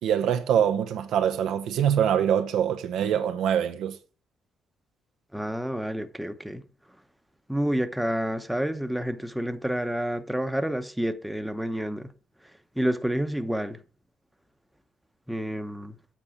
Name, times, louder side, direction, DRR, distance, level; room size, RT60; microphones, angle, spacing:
voice 1, 0.0-4.0, right 9 dB, 80° right, 0.9 m, -24 dB
voice 2, 5.3-6.6 7.5-12.1 12.8-13.8 15.3-16.0, equal, 5° right, 1.0 m, -29 dB
8.7 x 4.3 x 7.1 m
cardioid pair, 90°, 0 cm